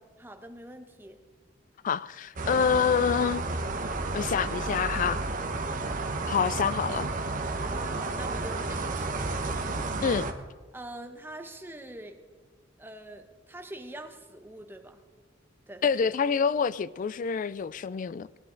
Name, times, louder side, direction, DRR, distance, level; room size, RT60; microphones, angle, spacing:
voice 1, 0.2-1.2 5.6-6.0 7.6-9.5 10.7-12.2 12.8-15.0 15.7-16.1, right 1 dB, 10° right, 1.0 m, -44 dB
voice 2, 1.8-3.4 4.1-5.2 6.3-7.1 10.0-10.3 15.8-18.3, left 6 dB, 40° left, 0.3 m, -27 dB
sound 1, 2.4-10.3, right 3 dB, 40° right, 1.0 m, -32 dB
19.0 x 11.0 x 3.9 m
head